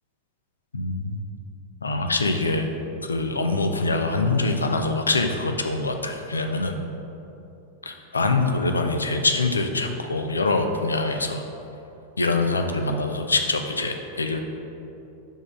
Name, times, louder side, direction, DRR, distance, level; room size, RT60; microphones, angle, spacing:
voice 1, 0.7-1.2 1.8-2.7 3.0-6.8 7.8-11.4 12.2-14.4, left 3 dB, 75° left, 5 dB, 0.4 m, -24 dB
7.1 x 3.6 x 5.1 m, 2.9 s
figure-of-eight pair, 90°, 0 cm